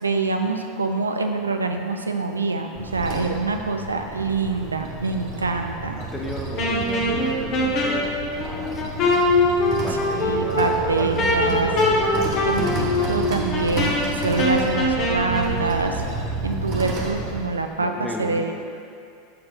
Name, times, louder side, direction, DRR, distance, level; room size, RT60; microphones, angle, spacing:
voice 1, 0.0-6.0 10.1-11.7 12.4-16.0 16.4-18.5, right 3 dB, 85° right, 5 dB, 0.3 m, -25 dB
sound 1, 2.7-17.4, right 3 dB, 45° right, 1.1 m, -31 dB
voice 2, 6.1-8.1 8.4-9.3 9.8-12.8 17.8-18.5, left 1 dB, 10° left, -1 dB, 0.9 m, -35 dB
Wind instrument woodwind instrument, 6.6-15.6, left 1 dB, 45° left, 1.0 m, -23 dB
6.4 x 4.6 x 3.7 m, 2.5 s
figure-of-eight pair, 85°, 0 cm